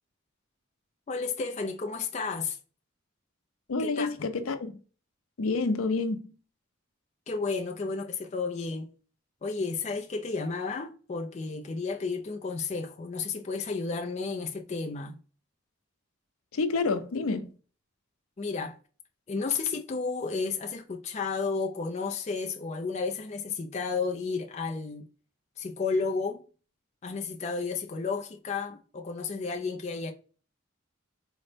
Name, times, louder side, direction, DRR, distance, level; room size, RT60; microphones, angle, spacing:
voice 1, 1.1-2.6 3.8-4.1 7.3-8.9 9.4-15.2 18.4-18.8 19.3-25.0 25.6-26.4 27.0-30.1, left 4 dB, 30° left, 0.3 m, -32 dB
voice 2, 3.7-4.7 5.4-6.3 16.5-17.5, left 3 dB, 90° left, 0.5 m, -28 dB
3.9 x 2.1 x 3.2 m
head